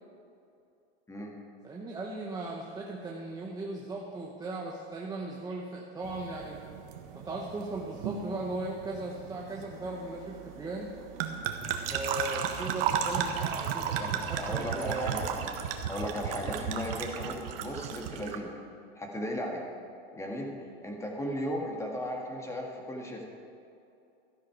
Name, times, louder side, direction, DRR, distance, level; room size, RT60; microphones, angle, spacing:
voice 1, 1.6-6.6 7.2-10.9 11.9-14.0 14.3-15.3 16.4-16.7, right 2 dB, 10° right, -2 dB, 1.0 m, -37 dB
sound 1, 6.0-18.4, right 8 dB, 60° right, 1.4 m, -35 dB
voice 2, 14.0-15.5 15.9-18.6 19.0-19.7 20.1-23.2, equal, 10° left, 0 dB, 1.9 m, -36 dB
13.0 x 12.0 x 4.8 m, 2.6 s
supercardioid pair, 140°, 32 cm